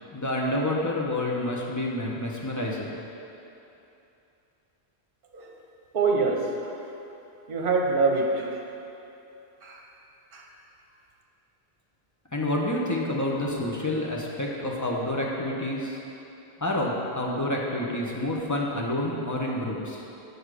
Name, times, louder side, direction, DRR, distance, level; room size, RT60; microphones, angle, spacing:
voice 1, 0.1-2.9 12.3-16.0 16.6-20.0, left 1 dB, 20° left, -3 dB, 0.8 m, -28 dB
voice 2, 5.9-6.7 7.5-8.5 9.6-9.8 10.3-10.5, right 3 dB, 55° right, 0 dB, 1.0 m, -25 dB
7.1 x 6.4 x 4.9 m, 2.9 s
omnidirectional pair, 1.1 m